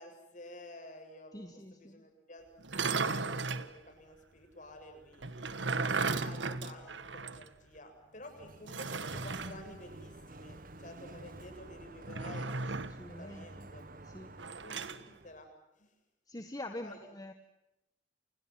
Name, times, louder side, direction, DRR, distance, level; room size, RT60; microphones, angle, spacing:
voice 1, 0.0-2.5 2.9-5.5 6.1-12.7 13.2-13.9 14.6-15.5 15.8-15.9 16.7-17.0, left 1 dB, 45° left, 6 dB, 7.7 m, -51 dB
voice 2, 1.3-2.0 13.0-13.7 14.1-14.3 16.3-17.3, left 1 dB, 20° left, 7 dB, 1.6 m, -45 dB
sound 1, 2.6-3.7 5.2-7.5 7.8-7.9 8.7-9.6 12.0-13.0 14.4-15.0, right 4 dB, 75° right, 1.6 m, -35 dB
Sliding door, 8.0-15.4, right 2 dB, 50° right, 1.6 m, -50 dB
29.5 x 29.0 x 5.9 m, 0.87 s
head